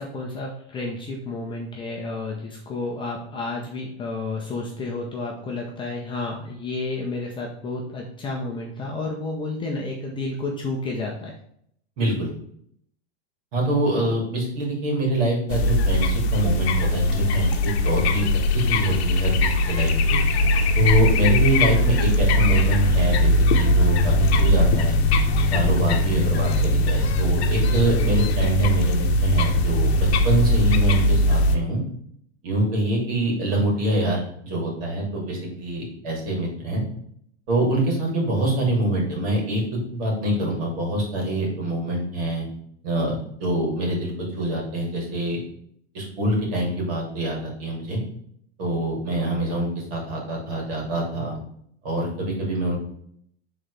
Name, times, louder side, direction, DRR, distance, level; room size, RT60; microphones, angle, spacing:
voice 1, 0.0-11.3, left 2 dB, 15° left, -2 dB, 0.6 m, -31 dB
voice 2, 12.0-12.3 13.5-18.3 18.5-20.2 20.8-25.0 25.5-29.9 30.2-31.8 32.4-36.8 37.5-42.5 42.8-45.4 45.9-48.0 48.6-51.4 51.8-52.8, right 1 dB, 55° right, -2 dB, 2.7 m, -25 dB
sound 1, 15.5-31.6, left 1 dB, 65° left, 0.8 m, -20 dB
7.6 x 3.9 x 3.3 m, 0.68 s
supercardioid pair, 150°, 34 cm